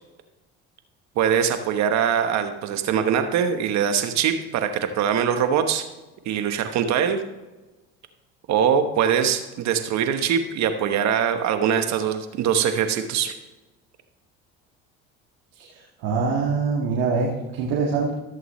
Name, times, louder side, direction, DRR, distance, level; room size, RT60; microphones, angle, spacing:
voice 1, 1.2-5.9 6.3-7.2 8.5-13.3, right 8 dB, 60° right, 8 dB, 1.2 m, -22 dB
voice 2, 16.0-18.1, right 4 dB, 75° right, -4 dB, 1.9 m, -24 dB
14.5 x 7.8 x 3.2 m, 1.1 s
supercardioid pair, 90°, 31 cm